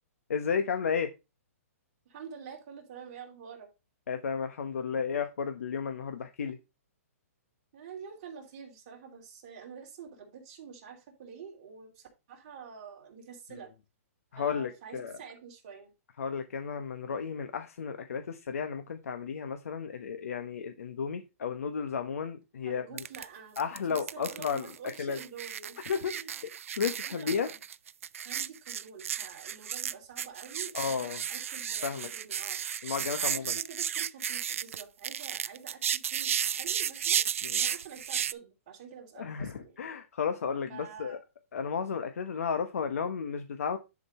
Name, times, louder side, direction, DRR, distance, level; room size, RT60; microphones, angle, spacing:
voice 1, 0.3-1.1 4.1-6.6 14.3-15.2 16.2-22.8 23.6-24.7 25.0-25.2 25.9-26.1 26.8-27.5 30.7-31.2 31.8-32.1 32.8-33.6 37.4-37.6 39.2-41.2 41.5-43.8, left 6 dB, 70° left, 1.0 m, -33 dB
voice 2, 2.0-3.7 7.7-13.7 14.3-15.9 22.6-23.6 23.9-25.8 26.1-26.3 27.0-27.6 28.2-32.6 33.2-35.8 36.1-37.2 37.6-39.8 40.7-41.2, right 6 dB, 30° right, 2.8 m, -47 dB
sound 1, 23.0-23.2 23.6-38.3, right 9 dB, 60° right, 0.5 m, -33 dB
10.5 x 5.2 x 4.2 m
hypercardioid pair, 180°, 8 cm